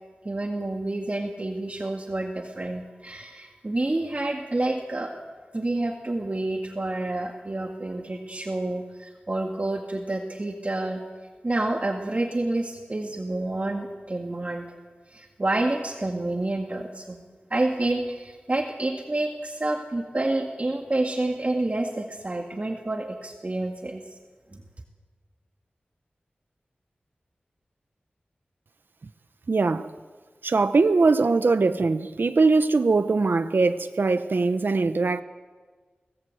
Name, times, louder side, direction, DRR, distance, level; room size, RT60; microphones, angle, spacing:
voice 1, 0.2-5.1 5.5-11.0 11.4-14.7 15.1-17.2 17.5-24.0 24.5-24.6, right 2 dB, 40° right, 2.0 m, -28 dB
voice 2, 29.5-29.9 30.4-35.2, right 3 dB, 70° right, 0.8 m, -21 dB
24.0 x 18.5 x 8.0 m
wide cardioid pair, 65°, 4 cm